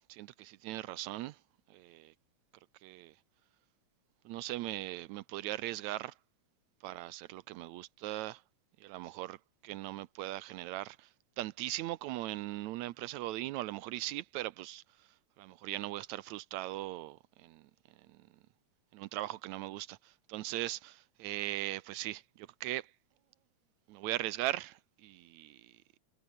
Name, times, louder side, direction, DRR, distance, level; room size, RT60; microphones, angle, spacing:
voice 1, 0.1-1.4 1.7-2.1 2.8-3.1 4.3-6.1 6.8-8.4 8.8-9.4 9.6-11.1 11.4-14.8 15.4-17.7 18.1-18.2 18.9-22.9 23.9-25.7, right 16 dB, 80° right, 2.0 m, -39 dB
omnidirectional pair, 3.3 m